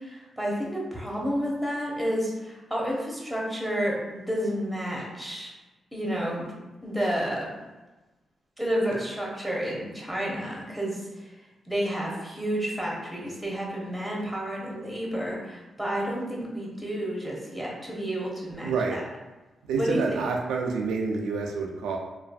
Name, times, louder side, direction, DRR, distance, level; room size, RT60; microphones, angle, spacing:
voice 1, 0.0-5.5 5.9-6.5 6.8-7.5 8.6-11.3 11.7-19.0 19.8-20.2, equal, ahead, -3 dB, 1.1 m, -30 dB
voice 2, 18.6-19.0 19.7-22.0, right 4 dB, 90° right, 0 dB, 0.3 m, -28 dB
3.1 x 2.4 x 2.4 m, 1.1 s
supercardioid pair, 50°, 0 cm